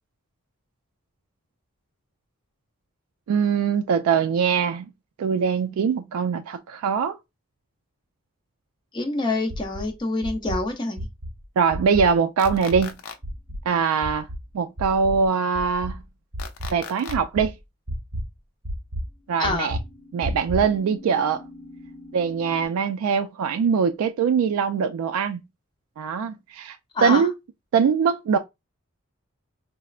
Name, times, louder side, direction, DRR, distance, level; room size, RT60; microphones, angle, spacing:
voice 1, 3.3-4.9 5.2-7.2 11.6-13.0 13.7-14.3 14.5-16.0 16.7-17.5 19.3-19.8 20.1-21.4 22.1-25.4 26.0-26.8 27.0-27.3 27.7-28.4, right 6 dB, 85° right, 0.3 m, -22 dB
voice 2, 8.9-11.1 19.4-19.7 26.9-27.3, left 2 dB, 20° left, 0.5 m, -26 dB
sound 1, 9.5-9.9 10.2-10.6 11.0-11.3 11.7-12.1 12.4-12.9 13.2-13.6 14.0-14.4 14.8-15.3 15.5-16.0 16.3-16.8 17.1-17.5 17.9-18.2 18.6-19.1 19.4-19.8 20.2-20.7, equal, 40° right, 0.6 m, -31 dB
sound 2, 12.4-13.2 16.4-17.2, left 6 dB, 85° left, 0.5 m, -37 dB
sound 3, 13.0-13.1 19.1-22.7, left 2 dB, 65° left, 1.0 m, -46 dB
4.2 x 2.0 x 2.3 m
head